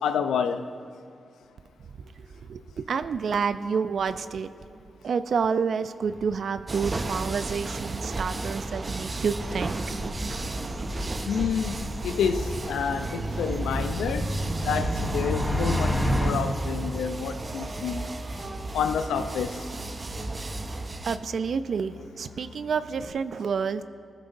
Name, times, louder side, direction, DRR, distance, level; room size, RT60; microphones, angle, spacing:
voice 1, 0.0-0.7 11.3-14.3 14.6-18.0 18.7-19.6, left 7 dB, 90° left, 8 dB, 0.6 m, -28 dB
voice 2, 2.5-4.5 5.0-9.8 21.0-23.8, right 6 dB, 70° right, 12 dB, 0.5 m, -29 dB
sound 1, 6.0-6.6 6.9-7.0 9.1-16.3, equal, 5° right, 3.4 m, -30 dB
sound 2, 6.7-21.2, right 2 dB, 45° right, 0.8 m, -34 dB
Musical instrument, 16.2-23.1, left 3 dB, 50° left, 2.0 m, -48 dB
19.5 x 14.0 x 2.7 m, 2.3 s
supercardioid pair, 45°, 0 cm